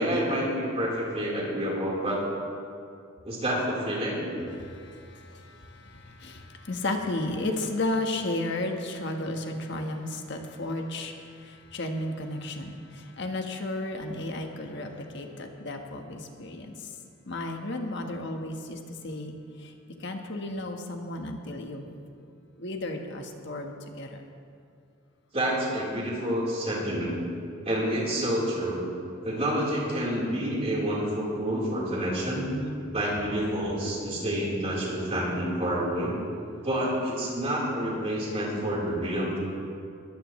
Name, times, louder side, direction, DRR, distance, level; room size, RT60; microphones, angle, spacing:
voice 1, 0.0-2.2 3.2-4.2 25.3-27.1 27.6-28.8 29.2-32.5 32.9-36.1 36.6-39.4, equal, 30° right, -5 dB, 4.1 m, -28 dB
voice 2, 4.6-16.7 17.3-19.7 20.0-22.0 22.6-24.2, left 2 dB, 60° left, 3 dB, 1.4 m, -33 dB
21.0 x 15.0 x 3.2 m, 2.4 s
head